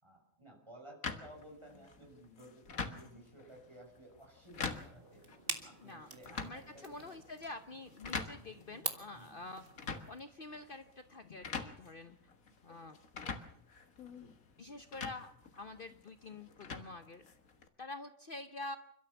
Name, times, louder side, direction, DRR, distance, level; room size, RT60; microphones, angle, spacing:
voice 1, 0.0-5.2 5.6-7.1 8.3-8.6 9.1-9.5, right 1 dB, 20° right, 0 dB, 6.3 m, -56 dB
sound 1, 1.0-17.7, left 5 dB, 90° left, 2.0 m, -46 dB
sound 2, 4.7-10.2, right 3 dB, 40° right, 2.1 m, -46 dB
voice 2, 5.8-9.7 10.1-12.1 12.6-13.0 14.6-17.2 17.8-18.8, left 2 dB, 45° left, 9 dB, 1.0 m, -47 dB
29.0 x 13.0 x 7.1 m, 0.67 s
omnidirectional pair, 1.4 m